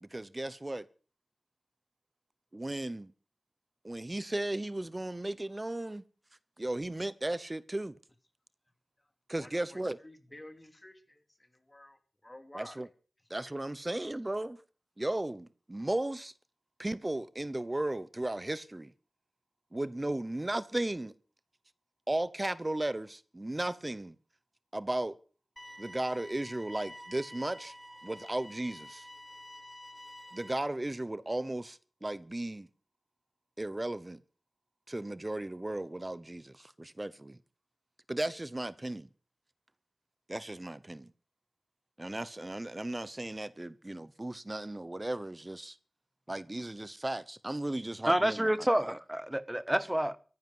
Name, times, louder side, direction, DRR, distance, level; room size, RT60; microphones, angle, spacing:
voice 1, 0.0-0.9 2.5-3.1 3.8-6.0 6.6-8.0 9.3-10.0 12.5-12.9 13.3-14.6 15.0-16.3 16.8-18.9 19.7-21.1 22.1-24.2 24.7-25.2 25.8-27.7 28.0-29.1 30.3-32.7 33.6-34.2 34.9-37.4 38.1-39.1 40.3-41.1 42.0-45.8 46.3-48.5, right 1 dB, 30° right, 0.9 m, -35 dB
voice 2, 9.0-12.8, left 1 dB, 25° left, 2.8 m, -52 dB
sound 1, 25.6-30.6, equal, 5° left, 3.3 m, -49 dB
voice 3, 48.1-50.2, right 1 dB, 15° right, 1.3 m, -28 dB
15.0 x 10.5 x 7.9 m
cardioid pair, 40°, 0 cm